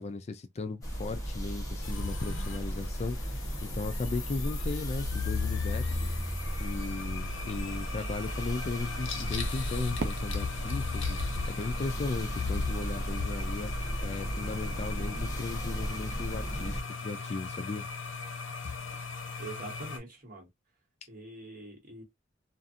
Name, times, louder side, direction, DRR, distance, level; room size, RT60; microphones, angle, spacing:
voice 1, 0.0-6.1 6.6-13.7 14.0-17.8, left 3 dB, 35° left, 0.3 m, -36 dB
sound 1, 0.8-16.8, equal, 15° left, 0.9 m, -35 dB
sound 2, 1.8-20.0, left 5 dB, 75° left, 0.9 m, -37 dB
Fireworks, 10.0-12.9, right 4 dB, 70° right, 0.4 m, -42 dB
voice 2, 19.4-20.5 21.1-22.0, right 2 dB, 45° right, 1.2 m, -44 dB
2.6 x 2.4 x 2.5 m
head